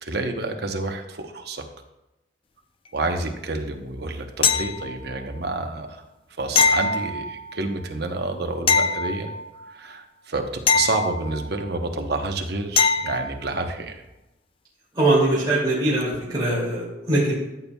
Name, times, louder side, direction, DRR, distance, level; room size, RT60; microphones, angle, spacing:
voice 1, 0.0-1.6 2.9-6.0 6.4-9.3 9.7-14.0, right 2 dB, 55° right, 4 dB, 0.9 m, -29 dB
sound 1, 4.4-5.2 6.5-7.6 8.7-9.7 10.7-11.7 12.8-13.4 16.1-16.2, left 5 dB, 25° left, 0.4 m, -23 dB
voice 2, 15.0-17.3, right 2 dB, 20° right, -8 dB, 2.4 m, -21 dB
13.0 x 7.1 x 2.3 m, 0.96 s
head